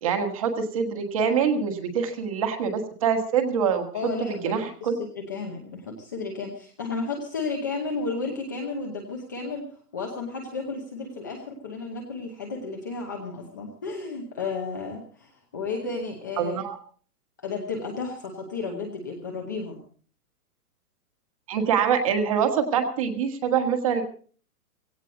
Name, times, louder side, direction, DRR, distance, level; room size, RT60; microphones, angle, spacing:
voice 1, 0.0-3.9 4.2-5.0 16.4-16.8 21.5-24.0, right 7 dB, 20° right, 7 dB, 1.5 m, -25 dB
voice 2, 3.9-16.6 17.4-19.8, left 4 dB, 15° left, 1 dB, 0.8 m, -33 dB
17.0 x 17.0 x 3.9 m, 0.43 s
hypercardioid pair, 180°, 45 cm